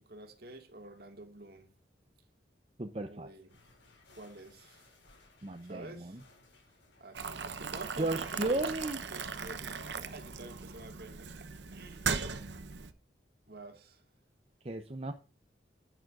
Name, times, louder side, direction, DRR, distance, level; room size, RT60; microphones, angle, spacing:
voice 1, 0.0-1.7 3.0-3.6 4.1-5.0 5.6-6.2 7.0-8.7 9.1-12.4 13.5-14.1, right 2 dB, 55° right, 2.0 m, -49 dB
voice 2, 2.8-3.3 5.4-6.2 8.0-9.0 14.6-15.1, right 2 dB, 30° right, 0.7 m, -34 dB
sound 1, 3.5-10.3, left 3 dB, 85° left, 5.1 m, -65 dB
Boiling, 7.1-12.9, right 5 dB, 70° right, 0.9 m, -38 dB
11.0 x 8.9 x 2.5 m
head